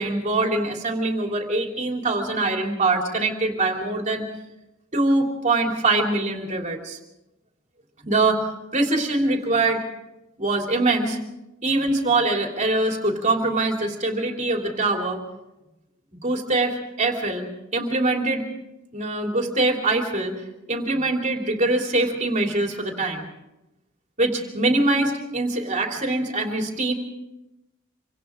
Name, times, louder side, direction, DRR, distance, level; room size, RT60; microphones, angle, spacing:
voice 1, 0.0-4.3 4.9-7.0 8.0-8.4 8.7-9.8 10.4-11.2 11.6-15.2 16.2-17.4 17.7-18.5 18.9-20.3 20.7-23.3 24.2-26.9, right 2 dB, 35° right, 2 dB, 3.1 m, -23 dB
27.0 x 25.5 x 3.8 m, 0.94 s
head